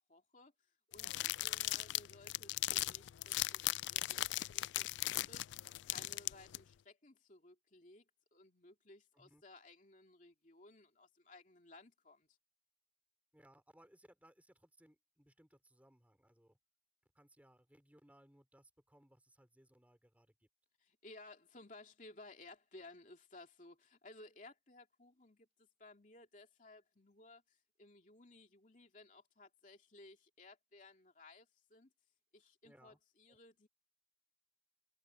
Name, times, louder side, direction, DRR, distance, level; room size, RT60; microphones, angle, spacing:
voice 1, 0.1-8.0 8.3-12.3 20.8-31.9 32.3-33.7, left 2 dB, 45° left, 2.6 m, -59 dB
sound 1, 0.9-6.6, left 16 dB, 85° left, 0.3 m, -38 dB
voice 2, 13.3-16.6 17.1-20.5 32.6-33.0 33.3-33.4, right 1 dB, 10° right, 4.8 m, -66 dB
head